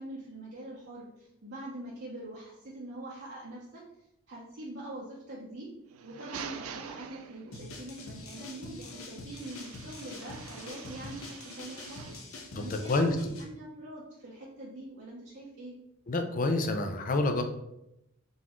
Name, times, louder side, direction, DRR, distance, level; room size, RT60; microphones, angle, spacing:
voice 1, 0.0-3.8 4.3-5.7 6.0-15.8, right 1 dB, 55° right, -6 dB, 0.8 m, -44 dB
sound 1, 5.8-7.8 9.3-12.3, right 7 dB, 80° right, 0.4 m, -46 dB
sound 2, 7.5-13.4, left 2 dB, 75° left, 0.7 m, -45 dB
voice 2, 12.5-13.2 16.1-17.4, left 2 dB, 40° left, 6 dB, 0.5 m, -28 dB
3.9 x 3.8 x 3.0 m, 0.85 s
head